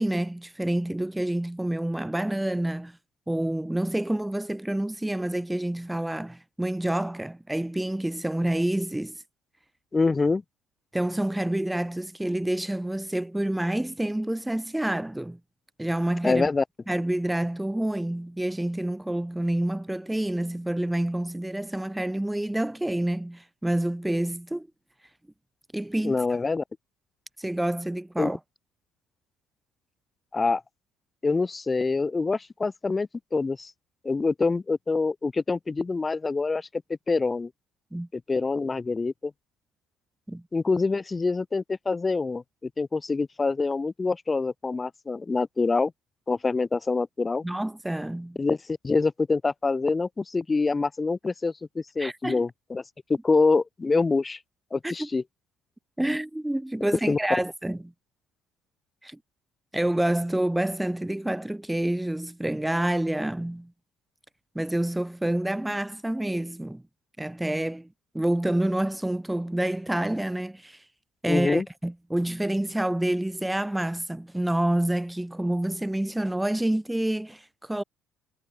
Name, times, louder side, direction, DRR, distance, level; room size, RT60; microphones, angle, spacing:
voice 1, 0.0-3.0 3.3-9.2 10.9-15.4 15.8-16.5 16.9-24.7 25.7-26.2 27.4-28.4 37.9-38.1 40.3-40.4 47.4-48.4 52.0-52.4 54.8-55.1 56.0-57.8 59.0-59.2 59.7-63.7 64.5-66.8 67.2-67.9 68.1-70.8 71.2-77.8, right 1 dB, 5° right, 2.7 m, -28 dB
voice 2, 9.9-10.4 16.2-16.6 26.0-26.6 28.2-28.3 30.3-30.6 31.2-33.7 34.0-36.7 37.1-37.5 38.1-39.3 40.5-45.9 46.3-47.5 48.4-48.6 48.8-52.8 53.1-54.4 54.7-55.2 57.1-57.2 71.2-71.6, left 3 dB, 25° left, 1.0 m, -25 dB
supercardioid pair, 80°, 0 cm